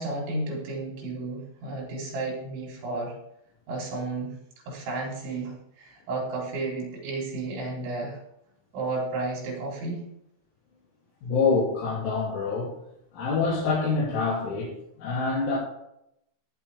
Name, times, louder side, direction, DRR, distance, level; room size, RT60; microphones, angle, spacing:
voice 1, 0.0-3.1 3.7-4.4 4.7-8.2 8.7-10.1, right 2 dB, 80° right, -2 dB, 5.9 m, -32 dB
voice 2, 11.2-12.7 13.1-14.7 15.0-15.6, left 4 dB, 85° left, -7 dB, 5.3 m, -26 dB
15.0 x 10.0 x 3.5 m, 0.77 s
omnidirectional pair, 5.3 m